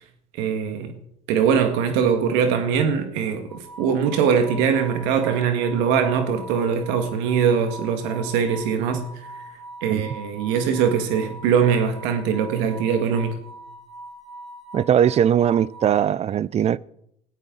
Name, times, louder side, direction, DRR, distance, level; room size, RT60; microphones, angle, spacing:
voice 1, 0.4-0.9 1.3-9.0 9.8-13.3, right 7 dB, 80° right, 1.9 m, -22 dB
sound 1, 3.5-16.1, right 1 dB, ahead, 4.0 m, -42 dB
voice 2, 14.7-16.8, right 9 dB, 35° right, 0.5 m, -20 dB
19.0 x 13.5 x 4.0 m
supercardioid pair, 100°, 18 cm